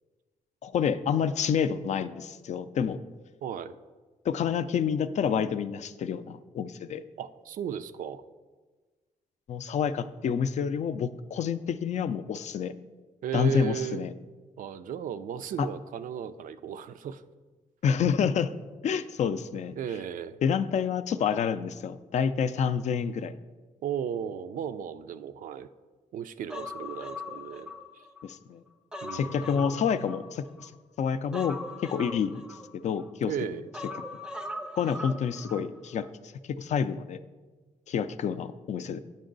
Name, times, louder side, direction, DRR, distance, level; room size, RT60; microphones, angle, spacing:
voice 1, 0.6-3.0 4.2-7.0 9.5-12.7 13.3-14.1 15.6-15.7 17.8-18.5 18.8-19.7 20.4-23.3 28.2-28.6 29.1-30.7 31.0-31.6 31.8-32.4 32.7-33.3 34.8-36.1 36.6-37.2 37.9-39.0, left 7 dB, 55° left, 12 dB, 0.4 m, -28 dB
voice 2, 3.4-3.8 7.2-8.2 13.2-14.1 14.6-17.2 19.7-20.4 23.8-25.7 26.1-28.0 29.0-30.1 33.2-33.7, right 8 dB, 75° right, 13 dB, 0.4 m, -35 dB
Human voice, 26.5-28.3 28.7-30.7 31.3-33.1 33.7-35.7 36.0-36.1, left 2 dB, 5° right, 0.4 m, -40 dB
8.7 x 5.3 x 3.8 m, 1.3 s
cardioid pair, 120°, 14 cm